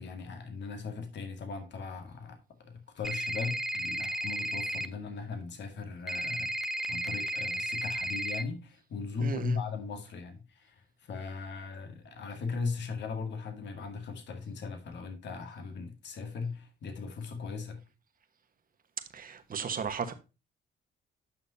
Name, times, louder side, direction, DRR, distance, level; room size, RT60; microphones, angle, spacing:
voice 1, 0.0-6.5 6.9-17.8, left 4 dB, 65° left, 2.0 m, -38 dB
sound 1, 3.0-4.9 6.1-8.4, right 1 dB, ahead, 0.8 m, -33 dB
voice 2, 9.2-9.6 19.1-20.1, right 6 dB, 45° right, 1.3 m, -35 dB
8.7 x 6.3 x 2.7 m
cardioid pair, 90°, 20 cm